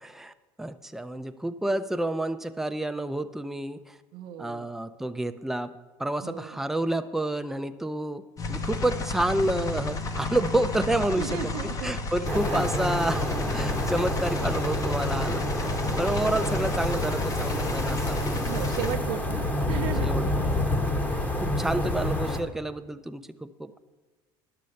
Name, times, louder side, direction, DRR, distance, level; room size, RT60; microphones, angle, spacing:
voice 1, 0.0-3.9 4.4-5.7 6.0-8.2 8.5-11.4 11.8-15.4 16.0-18.6 20.0-20.7 21.4-23.8, right 1 dB, 5° right, 9 dB, 0.5 m, -29 dB
voice 2, 4.1-4.7 6.2-6.6 11.1-11.9 12.3-12.9 15.9-16.5 18.4-20.1, right 11 dB, 70° right, 3 dB, 0.7 m, -36 dB
sound 1, 8.4-18.9, left 2 dB, 30° left, 1.0 m, -32 dB
sound 2, 12.2-22.4, left 1 dB, 15° left, 1.2 m, -28 dB
10.5 x 6.8 x 6.4 m, 1.3 s
cardioid pair, 120°, 11 cm